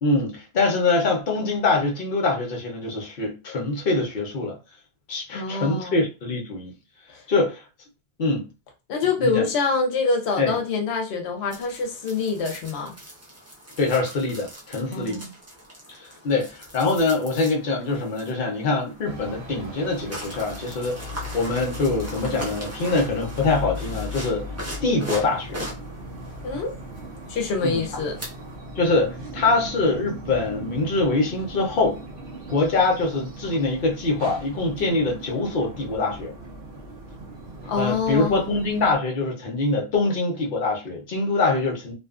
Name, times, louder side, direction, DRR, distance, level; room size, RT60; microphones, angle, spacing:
voice 1, 0.0-4.6 5.1-6.7 7.3-7.6 8.2-8.5 9.2-9.5 10.4-10.6 13.8-15.2 16.2-21.0 21.3-24.5 24.8-25.6 27.6-27.8 28.8-32.0 32.5-36.3 37.8-41.9, left 3 dB, 60° left, 0.9 m, -24 dB
voice 2, 5.3-6.0 8.9-12.9 14.9-15.3 26.4-26.8 27.3-28.2 37.7-38.5, left 4 dB, 90° left, 0.9 m, -25 dB
sound 1, 11.5-28.6, equal, 15° right, 0.6 m, -41 dB
sound 2, 19.1-39.0, equal, 75° right, 1.0 m, -38 dB
2.6 x 2.3 x 2.3 m
omnidirectional pair, 1.1 m